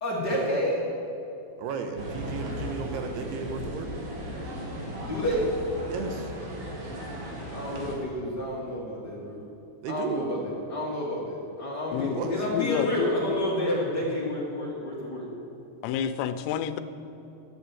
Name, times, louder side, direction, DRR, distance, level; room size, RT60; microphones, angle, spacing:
voice 1, 0.0-0.8 5.0-5.5 7.5-9.4 9.9-15.3, equal, 40° left, -4 dB, 1.5 m, -30 dB
voice 2, 1.6-3.9 5.9-6.3 9.8-10.3 12.1-12.4, right 6 dB, 75° right, 6 dB, 3.0 m, -34 dB
sound 1, 2.0-8.0, equal, 60° right, 3.8 m, -36 dB
voice 3, 11.9-13.5 15.8-16.8, left 8 dB, 90° left, 10 dB, 2.9 m, -29 dB
12.5 x 9.3 x 8.4 m, 2.9 s
omnidirectional pair, 4.9 m